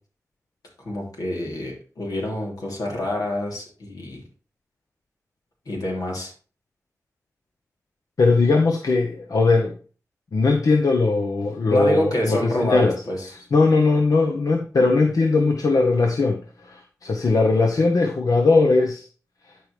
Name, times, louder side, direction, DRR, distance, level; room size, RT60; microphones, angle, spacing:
voice 1, 0.8-4.2 5.6-6.3 11.7-13.5, left 1 dB, 85° left, -2 dB, 3.2 m, -27 dB
voice 2, 8.2-9.7 10.3-13.0 13.5-19.1, left 3 dB, 70° left, 3 dB, 1.0 m, -19 dB
12.0 x 4.9 x 3.4 m, 0.39 s
cardioid pair, 55°, 6 cm